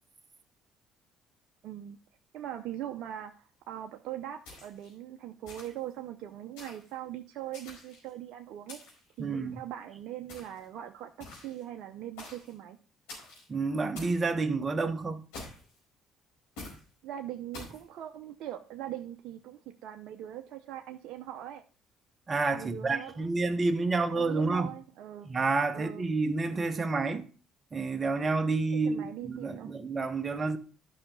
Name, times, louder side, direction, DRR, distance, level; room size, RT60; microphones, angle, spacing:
voice 1, 1.6-2.0 2.3-8.8 9.2-12.8 17.0-21.6 22.5-23.3 24.1-25.3 25.7-26.0 28.8-29.7, right 12 dB, 70° right, 0.7 m, -41 dB
sound 1, 4.4-4.9 5.4-5.9 6.6-6.9 7.5-8.1 8.7-9.1 10.3-10.6 11.2-11.6 12.2-12.5 13.1-13.4 13.9-14.2 15.3-15.8 16.6-16.8 17.5-17.8, left 2 dB, 85° left, 4.5 m, -46 dB
voice 2, 9.2-9.6 13.5-15.2 22.3-24.7 25.2-27.3 27.7-30.6, right 3 dB, 35° right, 1.2 m, -29 dB
11.5 x 5.8 x 3.9 m
hypercardioid pair, 65°, 0 cm